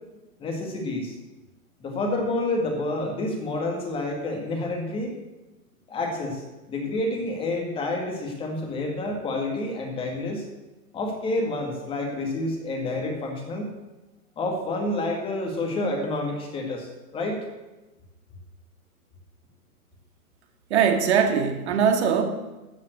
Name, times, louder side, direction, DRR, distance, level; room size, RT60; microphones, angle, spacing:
voice 1, 0.4-1.1 1.8-5.1 5.9-6.4 6.7-10.5 10.9-13.7 14.4-17.4, left 2 dB, 10° left, 2 dB, 1.9 m, -29 dB
voice 2, 20.7-22.2, right 7 dB, 45° right, 6 dB, 2.1 m, -21 dB
13.0 x 7.6 x 7.9 m, 1.1 s
hypercardioid pair, 155°, 44 cm